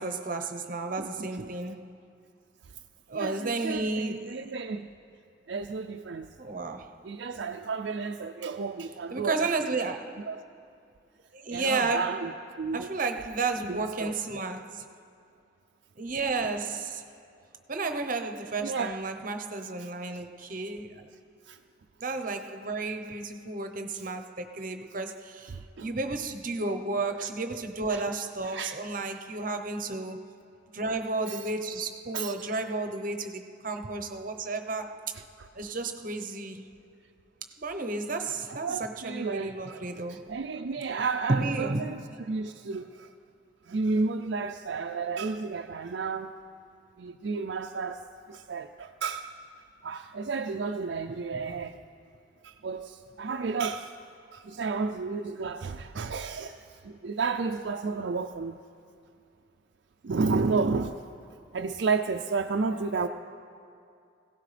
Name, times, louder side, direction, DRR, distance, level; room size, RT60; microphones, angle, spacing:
voice 1, 0.0-2.0 3.1-4.5 6.4-7.0 9.1-10.3 11.3-12.3 12.7-14.9 16.0-17.0 17.7-21.1 22.0-30.4 30.7-35.2 35.5-36.7 37.5-40.3 41.3-42.2 51.3-51.5 62.9-63.1, right 3 dB, 45° right, 0.8 m, -32 dB
voice 2, 1.0-1.5 3.1-4.9 5.5-6.3 7.0-9.6 10.3-10.4 11.5-12.3 12.6-12.9 13.6-14.1 18.6-19.0 19.8-19.9 21.5-21.6 25.5-25.9 27.2-27.3 27.9-28.0 28.4-28.8 31.3-31.4 32.1-32.5 35.4-35.5 38.5-39.8 40.1-42.0 42.3-43.1 43.7-46.3 47.0-49.3 49.8-51.8 52.4-53.9 54.3-58.6 60.0-61.0 61.5-63.1, right 4 dB, 60° right, 0.4 m, -32 dB
25.0 x 17.0 x 3.3 m
head